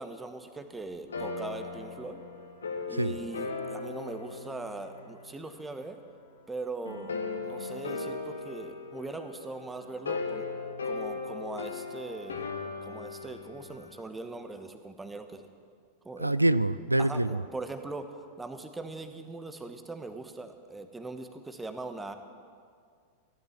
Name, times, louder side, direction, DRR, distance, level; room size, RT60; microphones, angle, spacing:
voice 1, 0.0-2.2 2.9-6.0 6.5-10.5 10.8-12.5 12.8-15.5 16.0-16.3 17.0-18.1 18.4-22.1, right 3 dB, 10° right, 8 dB, 1.3 m, -40 dB
sound 1, 1.1-5.7 6.9-14.0, left 4 dB, 70° left, 1.6 m, -38 dB
voice 2, 16.2-17.4, right 1 dB, 85° right, 17 dB, 0.4 m, -25 dB
16.0 x 12.0 x 7.4 m, 2.1 s
figure-of-eight pair, 90°, 0 cm